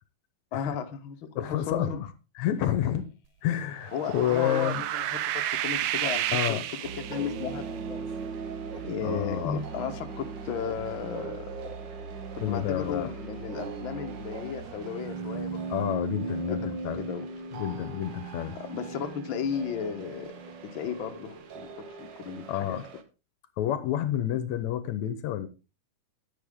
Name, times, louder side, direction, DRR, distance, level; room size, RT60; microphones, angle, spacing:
voice 1, 0.5-2.0 3.9-6.6 7.0-8.1 8.8-11.7 12.3-15.6 16.5-17.2 18.5-21.7 22.0-22.8, left 7 dB, 55° left, 1.6 m, -35 dB
voice 2, 1.4-2.1 2.4-3.1 3.4-4.8 6.3-6.6 9.0-9.6 12.4-13.1 15.7-17.0 17.5-18.6 22.5-22.9 23.6-25.5, left 11 dB, 75° left, 2.1 m, -29 dB
sound 1, 3.8-7.6, right 13 dB, 75° right, 1.5 m, -31 dB
sound 2, 4.9-23.0, right 4 dB, 55° right, 1.3 m, -39 dB
10.5 x 10.0 x 3.6 m
omnidirectional pair, 3.4 m